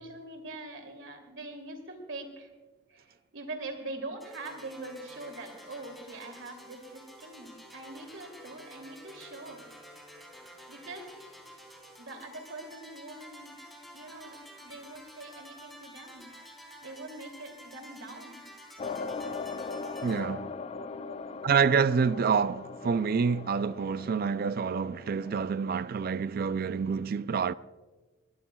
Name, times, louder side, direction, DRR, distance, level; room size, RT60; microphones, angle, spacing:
voice 1, 0.0-2.5 2.9-9.7 10.4-11.1 12.0-16.3 16.8-18.4 20.9-21.4, right 2 dB, 75° right, 2.8 m, -43 dB
sound 1, 4.2-20.2, equal, ahead, 3.1 m, -50 dB
sound 2, 18.8-25.5, left 4 dB, 30° left, 0.3 m, -40 dB
voice 2, 20.0-20.5 21.4-27.5, right 6 dB, 50° right, 0.4 m, -27 dB
22.0 x 18.0 x 2.3 m
head